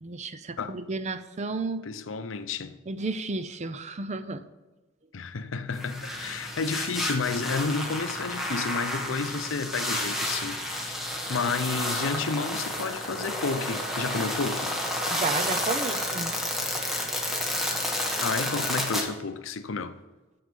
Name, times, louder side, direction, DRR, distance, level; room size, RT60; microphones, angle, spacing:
voice 1, 0.0-1.8 2.9-4.5 15.1-16.4, right 3 dB, 35° right, 0.5 m, -32 dB
voice 2, 1.8-2.8 5.1-14.7 18.2-20.0, left 4 dB, 80° left, 0.6 m, -31 dB
sound 1, 5.7-19.0, left 1 dB, ahead, 1.3 m, -31 dB
9.5 x 6.9 x 5.4 m
head